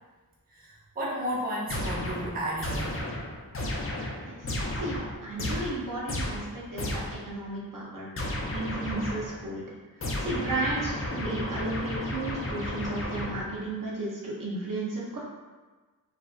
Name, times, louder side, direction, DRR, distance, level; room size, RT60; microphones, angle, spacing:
voice 1, 0.5-3.0, right 1 dB, 25° right, -5 dB, 0.5 m, -33 dB
sound 1, 1.7-7.3 8.2-9.5 10.0-13.7, left 1 dB, 40° left, 0.4 m, -33 dB
voice 2, 4.8-8.1 8.5-9.6 10.2-15.2, right 2 dB, 60° right, -5 dB, 0.7 m, -34 dB
2.4 x 2.2 x 2.3 m, 1.3 s
wide cardioid pair, 65°, 36 cm